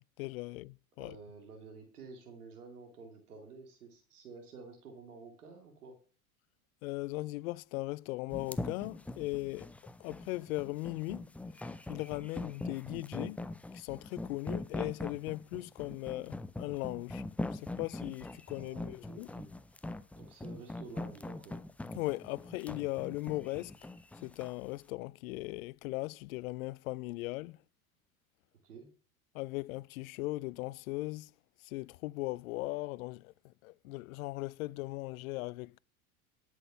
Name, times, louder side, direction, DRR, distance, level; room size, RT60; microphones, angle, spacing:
voice 1, 0.2-1.2 6.8-9.7 10.0-11.3 11.9-13.4 13.7-17.2 17.5-19.3 21.9-23.7 24.2-27.6 29.3-31.3 31.6-35.8, left 20 dB, 70° left, 0.5 m, -38 dB
voice 2, 1.0-6.0 18.6-19.5 20.1-21.6 28.6-28.9, right 4 dB, 90° right, 2.5 m, -51 dB
sound 1, 8.3-24.6, left 2 dB, 5° left, 0.4 m, -42 dB
11.0 x 6.3 x 5.6 m
hypercardioid pair, 95°, 44 cm